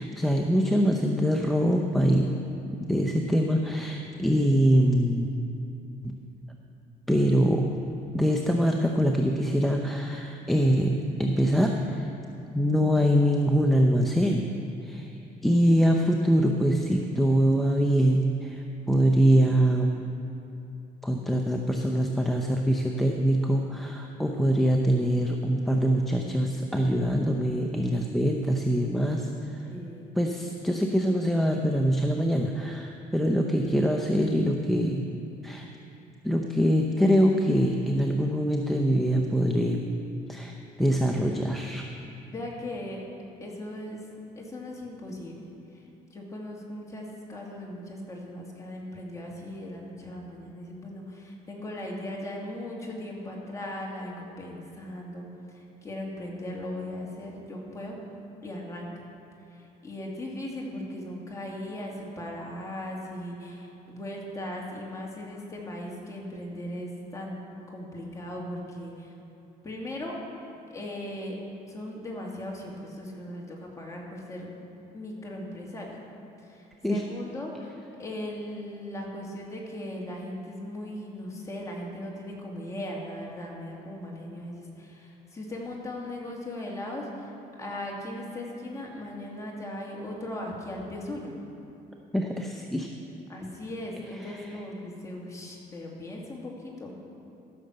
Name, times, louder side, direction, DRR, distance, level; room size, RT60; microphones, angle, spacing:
voice 1, 0.0-2.3 2.6-5.3 6.0-6.1 7.1-7.6 8.1-12.1 12.5-14.4 14.8-15.1 15.4-19.9 21.0-29.6 30.2-35.0 35.4-35.7 36.2-39.8 40.3-41.9 76.8-77.0 92.1-92.9, equal, ahead, 2 dB, 0.7 m, -24 dB
voice 2, 29.7-30.1 42.3-43.0 43.4-44.1 44.4-45.4 45.7-45.8 46.1-58.0 58.4-59.0 59.5-69.1 69.6-70.2 70.7-71.4 71.7-74.5 74.9-76.0 76.4-77.7 78.0-87.3 87.6-91.3 93.3-97.0, left 1 dB, 20° left, -3 dB, 2.4 m, -38 dB
14.5 x 6.6 x 6.5 m, 2.8 s
cardioid pair, 110°, 17 cm